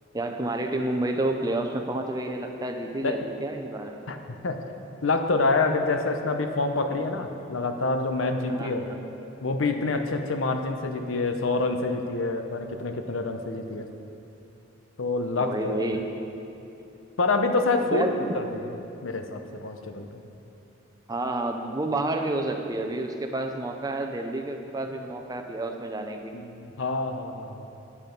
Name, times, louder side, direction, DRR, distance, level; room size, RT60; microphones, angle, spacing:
voice 1, 0.1-4.0 8.5-9.0 15.4-16.0 17.9-18.4 21.1-26.4, right 2 dB, 20° right, 4 dB, 0.6 m, -30 dB
voice 2, 5.0-8.8 9.4-13.9 15.0-15.9 17.2-18.1 18.3-18.7 19.0-20.2 26.3-27.7, left 3 dB, 90° left, 6 dB, 0.8 m, -27 dB
9.8 x 8.9 x 5.3 m, 2.8 s
head